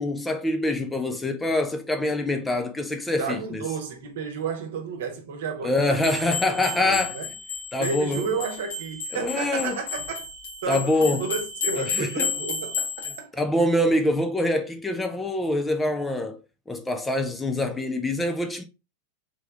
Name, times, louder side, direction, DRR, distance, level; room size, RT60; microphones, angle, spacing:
voice 1, 0.0-3.7 5.6-7.1 7.7-8.2 9.1-9.8 10.7-11.2 11.8-12.3 13.4-16.4 16.7-18.6, left 1 dB, 10° left, 0.6 m, -25 dB
voice 2, 3.2-6.2 6.4-7.3 7.7-10.3 10.6-13.3, right 5 dB, 55° right, 1.0 m, -32 dB
sound 1, 6.0-13.2, left 5 dB, 65° left, 1.5 m, -32 dB
3.7 x 3.5 x 3.3 m
figure-of-eight pair, 90°, 0 cm